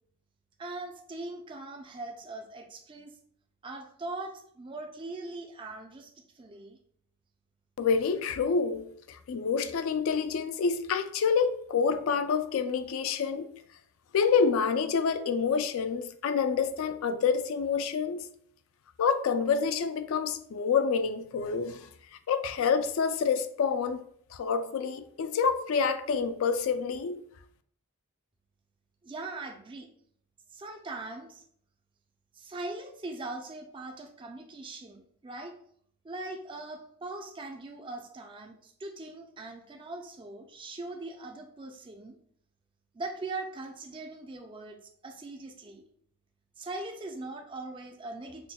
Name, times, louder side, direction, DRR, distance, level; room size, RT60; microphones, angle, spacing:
voice 1, 0.6-3.2 3.6-6.8 29.0-29.9 30.5-31.4 32.3-35.6 36.0-42.2 42.9-44.8 45.0-45.9 46.6-48.5, right 2 dB, 20° right, 0.4 m, -41 dB
voice 2, 7.8-13.5 14.1-18.3 19.0-21.9 22.3-24.0 24.3-27.2, left 5 dB, 70° left, 0.3 m, -27 dB
5.7 x 2.1 x 2.2 m
head